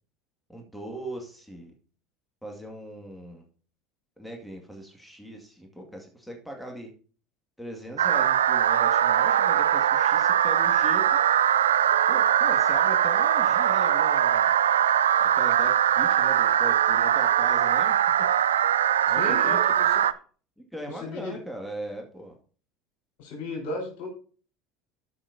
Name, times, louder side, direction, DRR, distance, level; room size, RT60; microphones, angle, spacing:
voice 1, 0.5-1.7 2.4-3.4 4.2-6.9 7.6-11.2 12.1-14.5 15.3-18.0 19.1-19.6 20.6-22.4, right 1 dB, ahead, 1 dB, 2.1 m, -39 dB
sound 1, 8.0-20.1, right 10 dB, 85° right, 0.3 m, -21 dB
voice 2, 19.1-20.0 20.9-21.4 23.2-24.1, left 2 dB, 70° left, 1 dB, 4.2 m, -34 dB
14.0 x 5.8 x 2.7 m, 0.40 s
hypercardioid pair, 80°, 0 cm